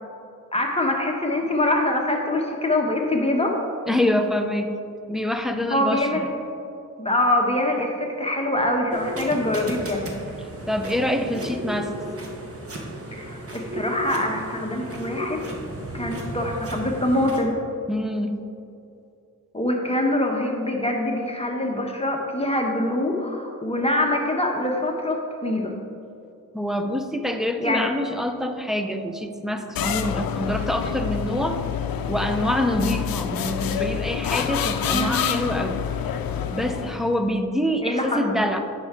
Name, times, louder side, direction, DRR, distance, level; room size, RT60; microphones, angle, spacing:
voice 1, 0.5-3.6 5.7-6.3 7.0-10.1 13.1-15.4 15.9-17.5 19.5-25.7 27.6-27.9 34.9-35.5 37.8-38.2, left 1 dB, 15° left, 0 dB, 1.1 m, -24 dB
voice 2, 3.9-4.8 5.1-6.2 10.7-11.9 17.9-18.4 26.5-31.6 32.1-35.8 36.5-38.6, left 1 dB, ahead, 5 dB, 0.7 m, -25 dB
sound 1, 8.9-17.4, right 1 dB, 40° right, 1.4 m, -34 dB
sound 2, 29.8-37.2, left 8 dB, 80° left, 0.5 m, -27 dB
9.7 x 5.6 x 3.7 m, 2.6 s
cardioid pair, 65°, 35 cm